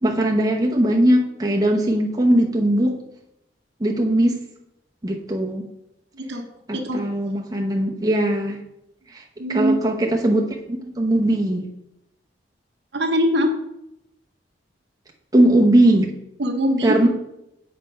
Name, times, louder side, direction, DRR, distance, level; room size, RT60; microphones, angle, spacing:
voice 1, 0.0-3.0 3.8-4.4 5.0-5.7 6.7-8.6 9.1-9.2 9.5-10.5 11.0-11.6 15.3-16.1 16.8-17.1, right 1 dB, 20° right, -1 dB, 0.8 m, -19 dB
voice 2, 9.4-9.8 12.9-13.6 16.4-17.0, equal, 65° right, 5 dB, 0.9 m, -22 dB
7.6 x 4.3 x 5.3 m, 0.85 s
head